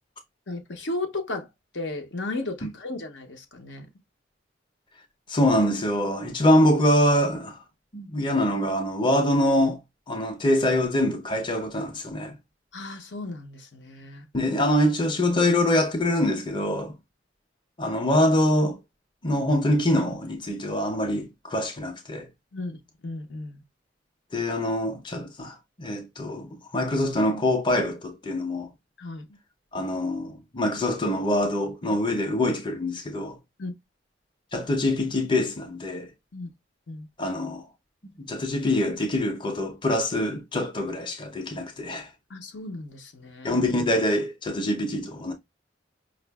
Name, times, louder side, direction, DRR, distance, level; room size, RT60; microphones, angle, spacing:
voice 1, 0.5-1.5 1.7-3.9 12.7-14.2 22.5-22.8 23.0-23.6 29.0-29.2 33.6-33.7 36.3-36.5 36.9-37.1 42.3-43.6, left 2 dB, 80° left, 0.8 m, -34 dB
voice 2, 5.3-7.6 7.9-9.8 10.1-12.3 14.3-16.9 17.8-18.8 19.2-22.3 24.3-28.7 29.7-33.4 34.5-36.1 37.2-37.7 38.2-42.1 43.4-45.3, left 1 dB, 25° left, 0.6 m, -24 dB
5.1 x 2.5 x 2.2 m
head